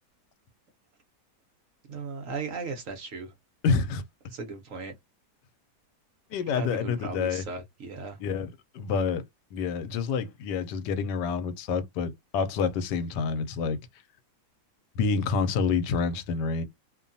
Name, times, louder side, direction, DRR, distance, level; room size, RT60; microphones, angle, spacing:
voice 1, 1.9-3.3 4.3-4.9 6.5-8.2, right 4 dB, 60° right, 1.0 m, -37 dB
voice 2, 3.6-4.0 6.3-7.4 8.2-9.2 9.5-13.8 15.0-16.6, left 5 dB, 85° left, 1.2 m, -28 dB
2.8 x 2.2 x 2.6 m
omnidirectional pair, 1.8 m